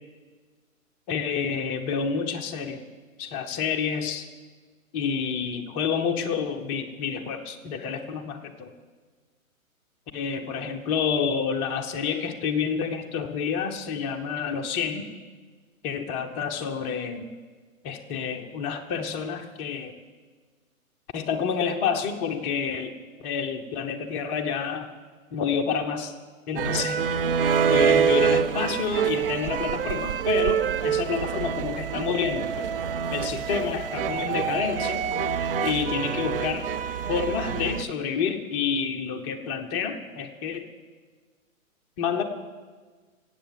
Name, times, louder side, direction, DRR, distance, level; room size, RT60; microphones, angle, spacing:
voice 1, 1.1-2.8 3.2-4.3 4.9-8.7 10.1-15.1 15.8-17.3 17.8-19.9 21.1-22.9 23.2-24.9 25.3-26.1 26.5-27.1 27.7-32.7 33.1-35.1 35.6-36.6 37.1-40.7 42.0-42.2, left 6 dB, 20° left, 4 dB, 0.9 m, -29 dB
sound 1, 26.6-37.8, right 7 dB, 40° right, 0.6 m, -26 dB
18.5 x 8.4 x 7.6 m, 1.4 s
figure-of-eight pair, 125°, 43 cm